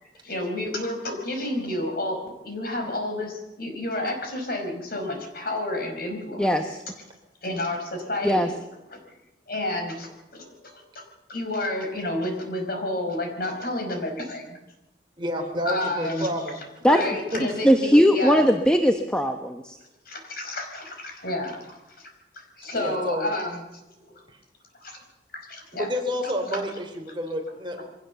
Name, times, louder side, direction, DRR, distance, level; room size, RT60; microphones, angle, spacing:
voice 1, 0.0-6.6 7.4-8.6 8.9-9.0 9.5-11.0 11.3-14.6 15.6-16.3 16.9-18.5 20.0-23.8 24.8-25.0 25.5-25.9, left 1 dB, 55° left, 3 dB, 5.0 m, -30 dB
voice 2, 15.2-16.6 17.3-17.4 22.7-23.3 24.3-24.4 25.7-27.8, equal, 25° right, 2 dB, 3.7 m, -29 dB
voice 3, 17.6-19.8, equal, 5° left, 5 dB, 1.0 m, -19 dB
23.5 x 17.5 x 7.0 m, 0.95 s
head